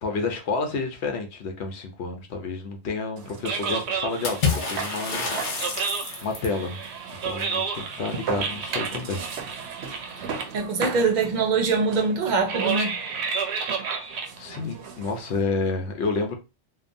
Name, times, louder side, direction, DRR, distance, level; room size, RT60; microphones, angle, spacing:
voice 1, 0.0-5.3 6.2-6.8 7.2-9.2 14.4-16.4, left 4 dB, 80° left, 0.9 m, -29 dB
sound 1, 3.2-15.4, right 5 dB, 85° right, 0.9 m, -31 dB
Water / Splash splatter, 4.2-6.6, left 5 dB, 55° left, 0.8 m, -28 dB
voice 2, 10.5-13.0, right 4 dB, 50° right, 0.6 m, -23 dB
2.7 x 2.2 x 2.5 m
omnidirectional pair, 1.1 m